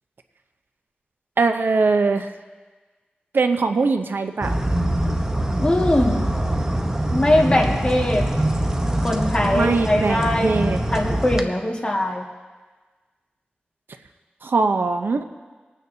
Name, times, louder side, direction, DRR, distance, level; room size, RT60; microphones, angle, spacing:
voice 1, 1.4-2.3 3.3-4.5 9.5-10.8 14.4-15.2, right 4 dB, 75° right, 7 dB, 0.7 m, -21 dB
sound 1, 4.4-11.4, right 1 dB, 15° right, 0.9 m, -23 dB
voice 2, 5.6-6.3 7.1-8.3 9.0-10.5 10.9-12.3, left 1 dB, 25° left, -1 dB, 1.8 m, -21 dB
24.5 x 9.3 x 2.8 m, 1.4 s
wide cardioid pair, 75°, 4 cm